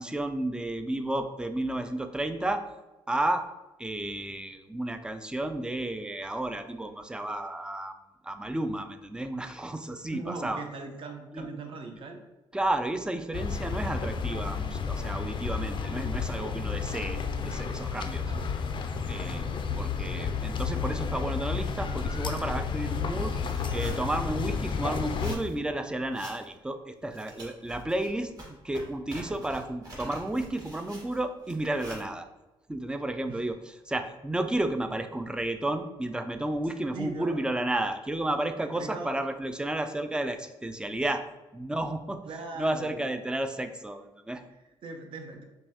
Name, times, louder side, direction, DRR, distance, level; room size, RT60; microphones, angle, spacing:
voice 1, 0.0-2.6 3.1-3.4 3.8-7.9 8.2-10.6 11.3-11.5 12.5-17.2 17.4-18.2 19.0-23.3 23.7-28.3 28.6-32.3 32.7-41.2 41.5-42.2 42.6-44.4, right 1 dB, 10° right, 8 dB, 0.4 m, -32 dB
voice 2, 10.1-12.2 16.2-16.7 18.3-18.5 19.3-20.3 33.3-33.4 36.9-37.4 38.6-39.1 42.3-43.1 44.5-45.4, right 3 dB, 55° right, 4 dB, 0.7 m, -41 dB
sound 1, 13.3-25.4, left 5 dB, 50° left, 0.4 m, -31 dB
sound 2, 23.3-24.2 25.0-25.5 26.1-26.5 27.0-32.0, right 1 dB, 35° right, 1.4 m, -46 dB
5.3 x 2.3 x 2.9 m, 1.0 s
cardioid pair, 75°, 10 cm